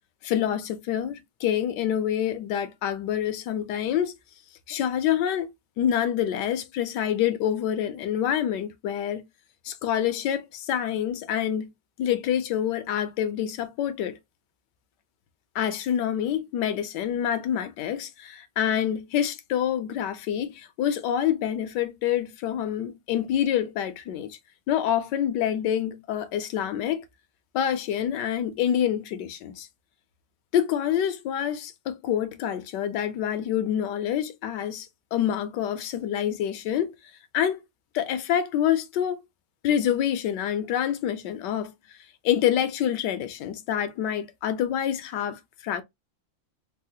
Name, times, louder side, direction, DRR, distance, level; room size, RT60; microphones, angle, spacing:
voice 1, 0.2-4.2 4.7-5.5 5.8-9.2 9.6-11.7 12.0-14.2 15.5-24.4 24.7-27.0 27.5-29.7 30.5-36.9 37.3-37.6 37.9-39.2 39.6-42.0 42.2-45.8, left 10 dB, 75° left, 1.1 m, -27 dB
4.1 x 2.0 x 2.6 m
omnidirectional pair, 2.0 m